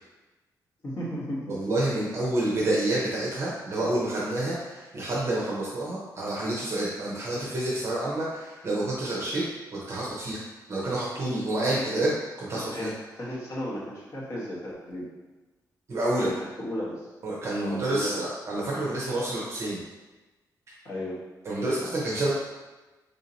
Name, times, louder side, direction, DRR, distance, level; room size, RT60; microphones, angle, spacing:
voice 1, 0.8-1.6 11.9-12.1 12.5-15.1 16.2-16.3 16.6-17.1 17.6-18.2 20.8-21.2, equal, 45° left, -6 dB, 1.2 m, -34 dB
voice 2, 1.5-9.4 9.7-10.4 10.7-12.1 12.4-12.9 15.9-16.3 17.2-19.8 21.4-22.3, right 1 dB, 40° right, -5 dB, 0.7 m, -28 dB
3.4 x 2.7 x 4.0 m, 1.2 s
wide cardioid pair, 155°, 7 cm